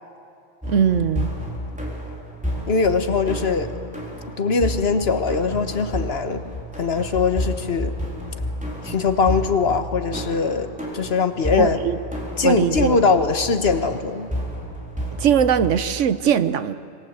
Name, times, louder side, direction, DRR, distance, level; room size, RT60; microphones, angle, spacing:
sound 1, 0.6-15.7, equal, 5° right, 4.0 m, -31 dB
voice 1, 0.7-1.3 11.6-12.0 12.4-13.0 15.2-16.7, right 8 dB, 75° right, 13 dB, 1.2 m, -20 dB
voice 2, 2.7-3.7 4.4-7.9 8.8-10.7 10.9-11.8 12.4-14.3, left 4 dB, 55° left, 8 dB, 1.5 m, -21 dB
25.5 x 20.5 x 8.2 m, 2.6 s
omnidirectional pair, 1.3 m